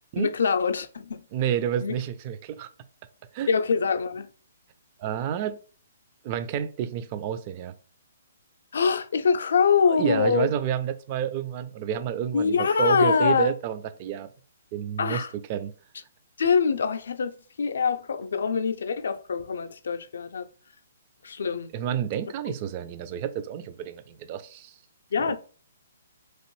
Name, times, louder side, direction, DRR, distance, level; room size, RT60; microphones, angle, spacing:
voice 1, 0.2-1.2 1.8-1.9 3.5-4.3 8.7-10.5 12.3-13.5 15.0-15.3 16.4-20.5 21.2-21.7 25.1-25.3, left 5 dB, 75° left, 0.4 m, -24 dB
voice 2, 1.3-2.7 3.3-3.5 5.0-5.6 6.2-7.7 9.9-14.3 14.7-15.2 15.5-15.7 21.7-24.7 25.2-25.3, right 9 dB, 35° right, 0.3 m, -29 dB
2.9 x 2.5 x 3.1 m
hypercardioid pair, 145°, 0 cm